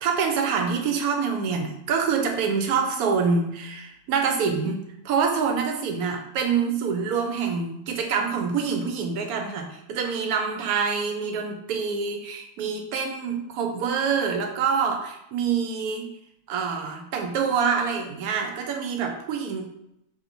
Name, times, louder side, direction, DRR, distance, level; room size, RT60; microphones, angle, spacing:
voice 1, 0.0-16.1 16.5-19.7, right 6 dB, 75° right, 4 dB, 1.1 m, -26 dB
3.1 x 2.6 x 4.3 m, 0.81 s
omnidirectional pair, 1.7 m